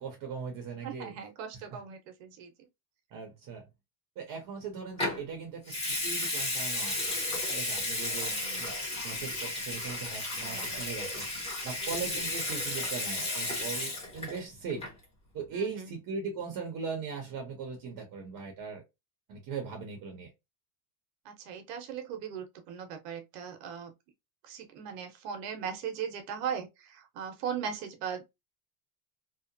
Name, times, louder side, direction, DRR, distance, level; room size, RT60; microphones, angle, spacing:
voice 1, 0.0-1.2 1.5-1.8 3.1-3.7 4.2-7.1 7.5-8.8 9.0-11.3 11.6-14.9 15.3-18.8 19.3-20.3, right 5 dB, 45° right, 0.9 m, -39 dB
voice 2, 0.8-2.7 8.2-8.7 10.3-10.8 11.8-12.0 15.5-15.9 21.2-23.9 24.4-28.3, right 7 dB, 85° right, 1.0 m, -39 dB
Water tap faucet / Sink (filling or washing) / Liquid, 5.0-5.2 5.7-14.4 14.7-15.0, left 2 dB, 15° left, 1.1 m, -33 dB
2.9 x 2.0 x 2.5 m
supercardioid pair, 130°, 47 cm